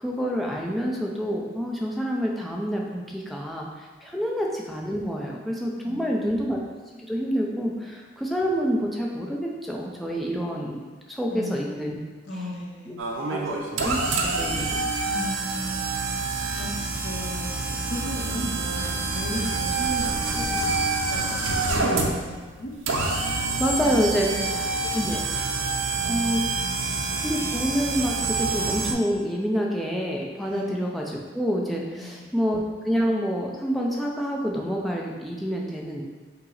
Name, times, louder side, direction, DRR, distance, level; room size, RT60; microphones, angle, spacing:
voice 1, 0.0-6.6 7.0-12.0 12.9-13.0 13.3-14.9 23.6-24.3 24.9-25.2 26.0-26.5 27.2-36.0, equal, ahead, -2 dB, 0.4 m, -27 dB
voice 2, 5.8-6.3 11.3-11.7 12.3-13.4 15.1-16.2 16.6-21.3 21.7-22.7 23.8-24.9 26.0-27.1 30.4-30.8 31.9-32.3, equal, 60° left, -2 dB, 0.7 m, -36 dB
sound 1, 13.0-28.9, right 3 dB, 80° right, 0.5 m, -27 dB
5.4 x 2.0 x 3.9 m, 1.4 s
head